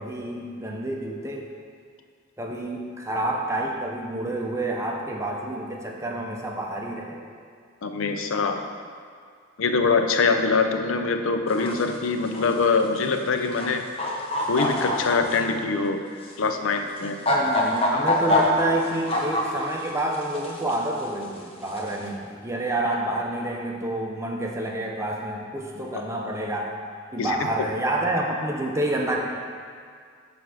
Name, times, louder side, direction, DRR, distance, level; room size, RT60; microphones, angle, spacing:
voice 1, 0.0-1.5 2.4-7.2 17.3-26.7 27.1-29.2, right 1 dB, 15° right, 0 dB, 0.7 m, -28 dB
voice 2, 7.8-8.6 9.6-13.8 14.5-16.0 16.4-17.2 27.2-27.4, left 4 dB, 80° left, 6 dB, 0.5 m, -23 dB
sound 1, 11.5-11.8 12.3-12.6 13.4-13.7 14.0-15.4 16.2-16.3 17.0-19.9 20.1-20.7 21.7-21.9, left 2 dB, 30° left, 0.9 m, -24 dB
9.2 x 3.4 x 6.2 m, 2.1 s
head